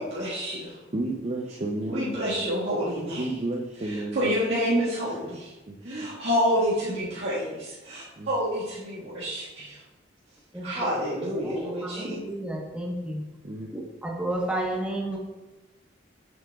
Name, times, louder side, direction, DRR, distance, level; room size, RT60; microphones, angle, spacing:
voice 1, 0.0-0.8 1.9-3.3 3.8-5.5 5.8-9.8 10.6-12.2, equal, 75° right, -10 dB, 1.7 m, -28 dB
voice 2, 0.9-2.5 3.2-4.4 5.7-6.3 8.1-8.3 13.4-13.8, right 2 dB, 35° right, 1 dB, 0.6 m, -32 dB
voice 3, 10.5-13.2 13.7-15.2, right 1 dB, 5° right, -2 dB, 1.1 m, -32 dB
7.8 x 7.4 x 2.4 m, 1.1 s
head